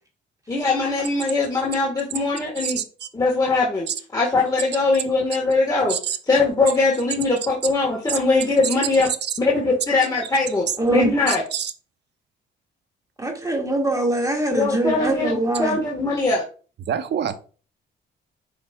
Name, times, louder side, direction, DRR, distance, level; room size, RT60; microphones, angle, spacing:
voice 1, 0.5-2.8 3.1-6.0 6.3-9.1 9.4-11.4 14.5-16.4, left 3 dB, 20° left, -3 dB, 1.5 m, -21 dB
voice 2, 2.6-3.1 3.9-4.0 5.9-6.2 8.1-8.2 11.3-11.7 16.9-17.3, right 9 dB, 60° right, 11 dB, 0.8 m, -26 dB
voice 3, 10.8-11.1 13.2-15.8, right 2 dB, 15° right, 2 dB, 1.9 m, -23 dB
8.4 x 4.9 x 2.3 m, 0.38 s
cardioid pair, 90°, 20 cm